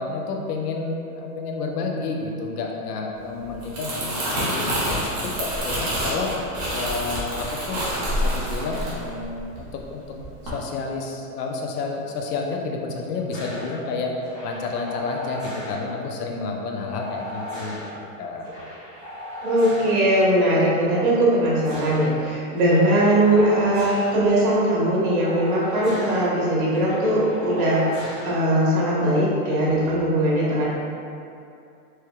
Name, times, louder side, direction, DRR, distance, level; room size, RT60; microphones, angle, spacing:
voice 1, 0.0-6.3 6.7-7.8 8.1-10.0 10.5-14.1 14.4-17.9 18.2-18.5, left 3 dB, 80° left, 1 dB, 0.7 m, -30 dB
Crumpling crinkling, 3.5-9.8 10.2-10.5, equal, 30° right, 0.7 m, -27 dB
sound 1, 13.3-13.7 14.2-15.8 16.9-17.9 18.4-20.0 21.3-22.0 22.6-24.1 25.2-26.2 26.7-28.3 29.6-30.0, left 1 dB, 5° right, 0.3 m, -37 dB
voice 2, 19.4-30.7, right 1 dB, 65° right, -6 dB, 1.4 m, -20 dB
4.4 x 3.1 x 2.3 m, 2.5 s
supercardioid pair, 175°, 46 cm